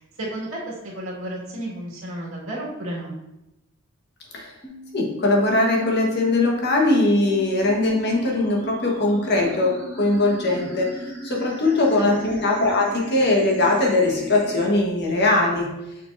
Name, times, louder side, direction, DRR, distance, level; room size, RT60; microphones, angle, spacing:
voice 1, 0.0-3.1 12.0-12.1, right 1 dB, 85° right, -4 dB, 1.9 m, -32 dB
sound 1, 4.6-14.6, right 2 dB, 10° left, 1.4 m, -38 dB
voice 2, 4.9-15.7, left 2 dB, 50° left, -1 dB, 1.3 m, -21 dB
6.5 x 6.2 x 2.6 m, 0.93 s
head